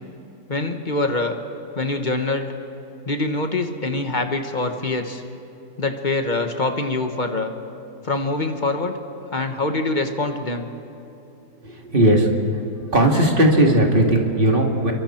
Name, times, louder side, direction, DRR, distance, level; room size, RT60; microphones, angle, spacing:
voice 1, 0.5-1.3 1.7-2.5 3.1-5.2 5.8-7.5 8.0-8.9 9.3-10.7, left 2 dB, 30° left, 5 dB, 1.2 m, -24 dB
voice 2, 11.6-12.3 12.9-14.9, right 1 dB, 30° right, 1 dB, 2.2 m, -17 dB
29.5 x 23.0 x 4.4 m, 3.0 s
omnidirectional pair, 1.9 m